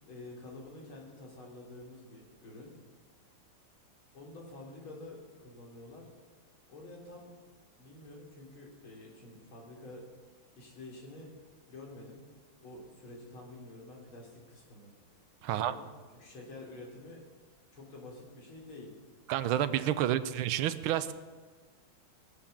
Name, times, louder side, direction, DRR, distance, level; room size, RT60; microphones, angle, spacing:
voice 1, 0.0-2.7 4.1-6.1 6.7-7.3 7.8-10.1 10.5-11.3 11.7-12.2 12.6-14.9 15.5-15.9 16.1-17.2 17.7-18.9, left 2 dB, 70° left, -2 dB, 4.1 m, -48 dB
voice 2, 15.4-15.7 19.3-21.1, right 11 dB, 75° right, 12 dB, 1.5 m, -29 dB
21.5 x 7.2 x 7.1 m, 1.4 s
omnidirectional pair, 2.3 m